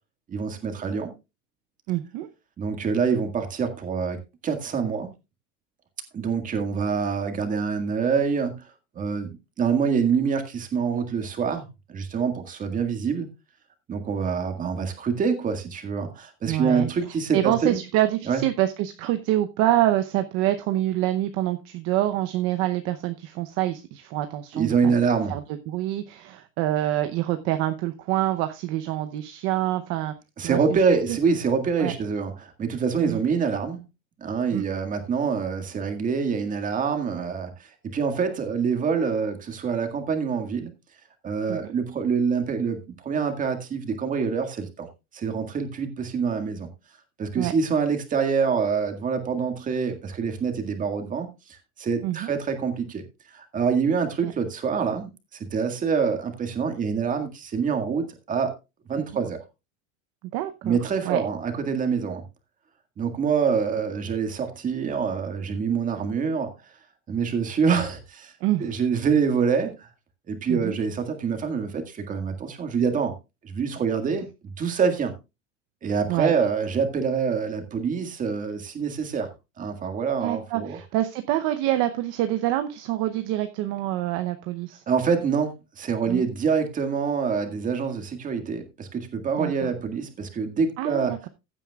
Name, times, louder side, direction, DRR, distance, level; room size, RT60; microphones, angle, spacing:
voice 1, 0.3-1.1 2.6-4.2 4.4-5.1 6.1-8.7 8.9-13.3 13.9-17.8 18.3-18.4 24.5-25.4 30.4-33.8 34.2-40.7 41.2-44.9 45.1-46.7 47.2-53.0 53.3-58.5 58.9-59.4 60.6-62.2 63.0-66.5 67.1-68.3 68.6-69.9 70.3-73.1 73.4-75.1 75.8-79.3 79.6-80.8 84.9-91.1, right 6 dB, 20° right, 6 dB, 1.9 m, -26 dB
voice 2, 1.9-2.3 16.5-16.9 17.3-24.9 25.3-30.1 30.4-30.6 31.8-31.9 33.0-33.2 34.5-34.6 41.5-41.6 47.4-47.5 52.0-52.3 54.2-54.3 59.1-59.3 60.3-60.8 61.0-61.2 68.4-68.7 70.5-70.8 76.1-76.3 80.2-84.8 86.1-86.2 89.4-89.7 90.8-91.3, right 14 dB, 40° right, 8 dB, 0.8 m, -26 dB
15.5 x 9.1 x 2.4 m, 0.26 s
supercardioid pair, 150°, 38 cm